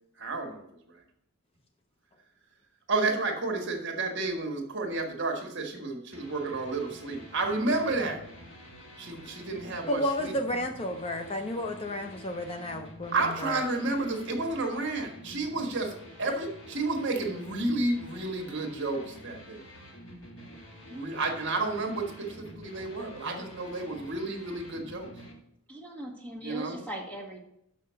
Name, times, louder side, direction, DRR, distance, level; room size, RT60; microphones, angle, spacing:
voice 1, 0.2-0.6 2.9-8.2 9.0-10.3 13.1-15.9 16.2-19.6 20.9-25.1 26.4-26.8, right 3 dB, 55° right, 3 dB, 1.5 m, -31 dB
sound 1, 6.1-25.3, left 1 dB, 60° left, 1.8 m, -48 dB
voice 2, 9.9-13.6 23.2-23.5, left 1 dB, 25° left, 5 dB, 0.5 m, -32 dB
voice 3, 25.7-27.4, equal, 5° left, -2 dB, 1.7 m, -39 dB
6.3 x 5.6 x 6.8 m, 0.76 s
head